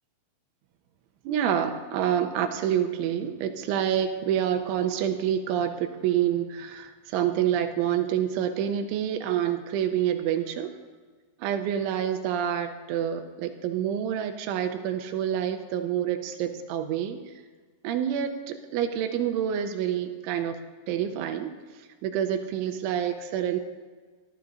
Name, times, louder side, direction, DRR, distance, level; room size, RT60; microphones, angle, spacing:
voice 1, 1.3-10.7 11.4-17.2 17.8-20.6 20.9-21.5 22.0-23.6, right 9 dB, 90° right, 6 dB, 3.2 m, -27 dB
21.0 x 12.5 x 2.7 m, 1.5 s
omnidirectional pair, 5.5 m